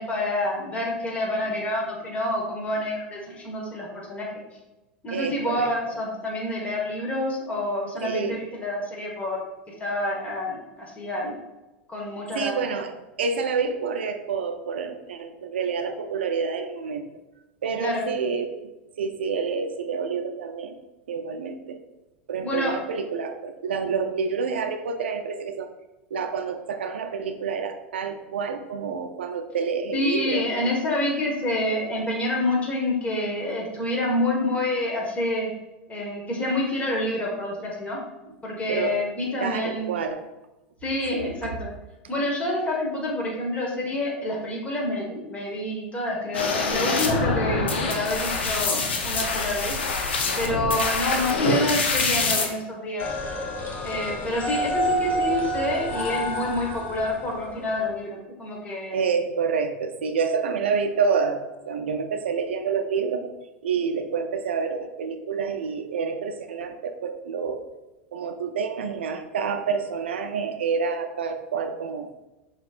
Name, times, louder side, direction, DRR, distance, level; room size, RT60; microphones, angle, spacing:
voice 1, 0.0-4.3 5.0-9.4 9.8-11.3 11.9-12.6 17.8-18.0 22.4-22.7 29.9-35.5 35.9-38.0 38.4-39.9 40.8-41.7 42.1-49.8 50.4-53.1 53.8-59.0, left 1 dB, 20° left, -2 dB, 1.5 m, -27 dB
voice 2, 5.1-5.7 8.0-8.4 12.3-17.1 17.6-18.6 19.0-20.8 21.1-21.8 22.3-25.7 26.1-30.4 38.7-39.0 39.4-40.2 41.1-41.3 58.9-63.3 63.6-67.6 68.1-72.1, right 5 dB, 85° right, 7 dB, 0.5 m, -28 dB
sound 1, 46.3-52.5, left 3 dB, 85° left, 0.6 m, -25 dB
sound 2, 53.0-57.9, equal, 35° left, 1.0 m, -29 dB
6.0 x 3.1 x 2.5 m, 1.0 s
hypercardioid pair, 95°, 6 cm